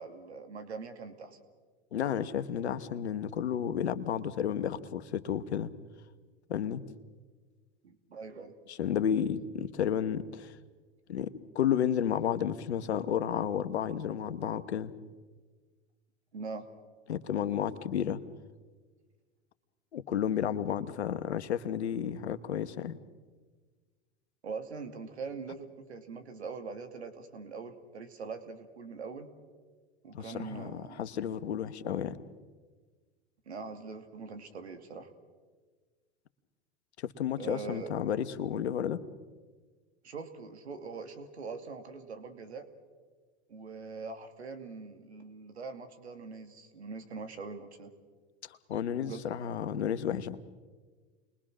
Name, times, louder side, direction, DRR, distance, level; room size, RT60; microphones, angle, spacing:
voice 1, 0.0-1.4 7.8-8.5 16.3-16.7 24.4-29.3 30.0-31.0 33.5-35.1 37.4-37.9 40.0-42.7 43.5-47.9 49.0-49.3, right 4 dB, 90° right, 8 dB, 2.5 m, -42 dB
voice 2, 1.9-5.7 6.5-6.8 8.7-10.5 11.1-14.9 17.1-18.2 19.9-23.0 30.1-32.2 37.0-39.0 48.7-50.4, left 9 dB, 85° left, 13 dB, 1.3 m, -32 dB
29.5 x 22.0 x 6.3 m, 1.4 s
hypercardioid pair, 85°, 32 cm